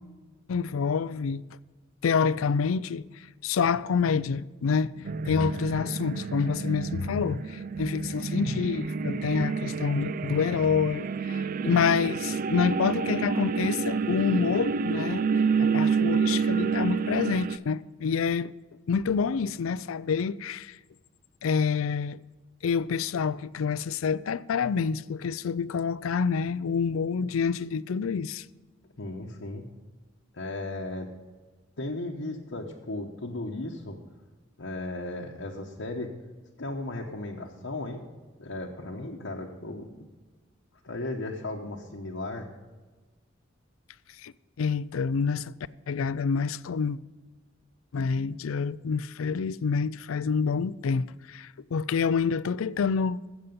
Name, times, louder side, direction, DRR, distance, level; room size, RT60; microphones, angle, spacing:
voice 1, 0.5-1.4 2.0-15.2 15.6-18.5 18.9-20.8 21.4-22.2 22.6-28.5 44.2-44.3 44.6-45.5 45.9-47.0 47.9-53.2, left 5 dB, 85° left, 0.4 m, -27 dB
sound 1, 5.0-17.6, right 5 dB, 45° right, 0.4 m, -29 dB
voice 2, 29.0-29.6 30.3-31.1 31.8-34.0 34.6-36.1 36.6-38.0 38.4-40.1 40.8-42.5, left 2 dB, 65° left, 1.0 m, -35 dB
13.5 x 8.1 x 5.3 m
head